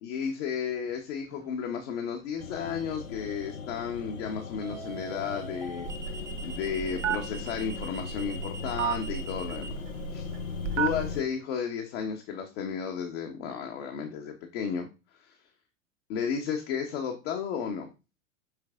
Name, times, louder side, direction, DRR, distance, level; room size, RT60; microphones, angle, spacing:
voice 1, 0.0-5.9 6.4-9.7 10.1-10.3 10.7-14.9 15.1-15.4 16.1-17.9, left 7 dB, 60° left, 2 dB, 1.2 m, -33 dB
sound 1, 1.3-1.6 4.6-9.7, right 3 dB, 10° right, 0.5 m, -43 dB
sound 2, 2.4-11.2, left 6 dB, 85° left, 0.8 m, -39 dB
Telephone, 5.9-11.2, right 9 dB, 65° right, 1.1 m, -34 dB
6.4 x 4.8 x 3.6 m, 0.30 s
figure-of-eight pair, 85°, 40 cm